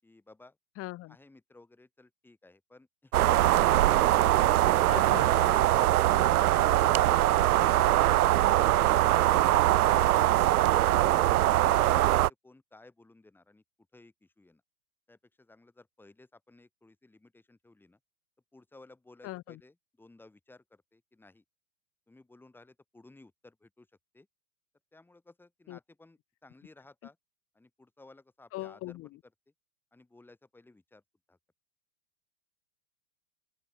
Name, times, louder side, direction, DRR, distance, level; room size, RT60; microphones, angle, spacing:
voice 1, 0.0-0.6 1.1-4.9 5.9-8.1 8.5-8.8 9.2-10.1 11.1-13.6 13.9-14.6 15.1-18.0 18.5-21.4 22.1-23.9 24.1-24.3 24.9-27.2 27.5-29.0 29.9-31.0 31.3-31.4, left 2 dB, 5° left, 7.3 m, -57 dB
voice 2, 0.8-1.2 4.9-5.5 19.2-19.6 25.7-25.8 28.5-29.1, left 17 dB, 30° left, 7.1 m, -40 dB
sound 1, 3.1-12.3, right 14 dB, 90° right, 0.7 m, -22 dB
open air
supercardioid pair, 150°, 43 cm